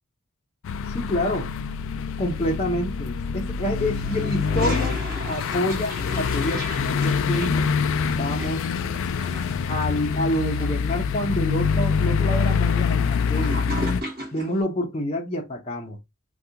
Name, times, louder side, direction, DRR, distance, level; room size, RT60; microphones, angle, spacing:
sound 1, 0.6-14.0, left 6 dB, 65° left, 0.3 m, -25 dB
voice 1, 0.9-1.5 2.2-5.0 5.3-7.7 8.1-8.6 9.7-13.6 14.3-16.0, equal, 30° left, 0.6 m, -27 dB
Toilet flush, 3.9-14.6, right 1 dB, 45° right, 1.0 m, -37 dB
2.8 x 2.3 x 3.5 m
head